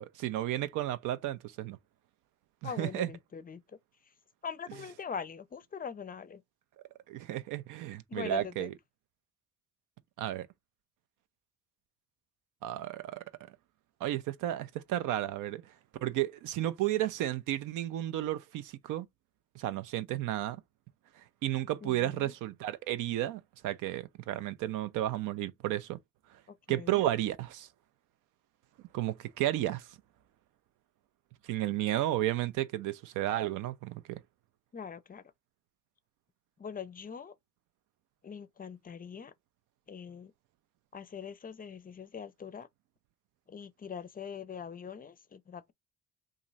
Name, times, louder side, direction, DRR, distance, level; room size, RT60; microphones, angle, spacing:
voice 1, 0.0-1.8 2.6-3.1 7.1-8.7 10.2-10.5 12.6-13.2 14.0-15.6 16.0-19.1 19.6-20.6 21.4-26.0 26.7-27.7 28.9-29.9 31.4-34.2, right 13 dB, 90° right, 0.5 m, -33 dB
voice 2, 2.6-3.6 4.4-6.4 8.1-8.7 21.8-22.3 26.7-27.0 34.7-35.2 36.6-37.3 38.2-39.3 39.9-40.3 40.9-42.7 43.5-45.7, left 6 dB, 30° left, 0.5 m, -42 dB
3.0 x 2.5 x 3.9 m
cardioid pair, 90°, 30 cm